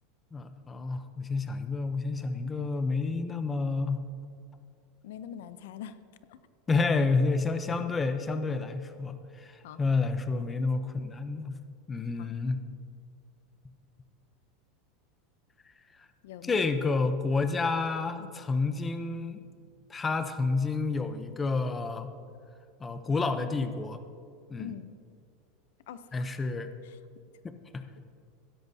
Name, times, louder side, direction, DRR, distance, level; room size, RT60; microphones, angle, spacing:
voice 1, 0.3-4.0 6.7-11.6 11.9-12.6 16.0-16.1 16.4-19.4 19.9-22.2 22.8-24.0 24.5-24.7 26.1-26.7 27.4-27.8, left 3 dB, 15° left, 9 dB, 0.6 m, -29 dB
voice 2, 5.0-6.0 6.3-6.4 9.6-9.8 12.2-12.3 16.2-16.6 18.2-18.3 24.6-24.9 25.9-26.3 26.8-27.0, left 9 dB, 80° left, 12 dB, 0.6 m, -43 dB
16.0 x 13.0 x 2.7 m, 2.3 s
supercardioid pair, 140°, 0 cm